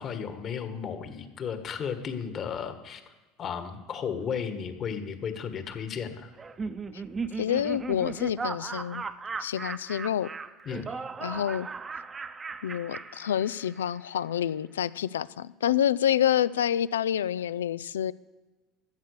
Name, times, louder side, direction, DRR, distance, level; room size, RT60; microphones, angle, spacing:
voice 1, 0.0-3.0 3.4-6.3 10.6-10.9, left 7 dB, 45° left, 8 dB, 1.7 m, -34 dB
Laughter, 6.4-13.9, right 4 dB, 25° right, 0.8 m, -37 dB
voice 2, 7.3-9.0 9.4-10.3 11.2-11.7 12.6-18.1, left 10 dB, 90° left, 18 dB, 0.3 m, -28 dB
13.5 x 8.0 x 6.7 m, 1.3 s
hypercardioid pair, 80°, 0 cm